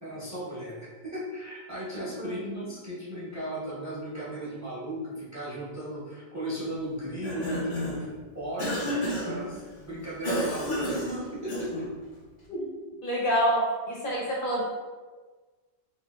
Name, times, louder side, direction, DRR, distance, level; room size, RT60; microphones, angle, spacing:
voice 1, 0.0-11.9, equal, 15° right, -8 dB, 0.9 m, -36 dB
Cough, 7.1-8.1 8.6-9.4 10.2-11.9, equal, 85° left, 1.4 m, -31 dB
voice 2, 13.0-13.6 13.9-14.6, equal, 55° left, -4 dB, 0.9 m, -27 dB
4.7 x 2.5 x 2.3 m, 1.4 s
omnidirectional pair, 1.2 m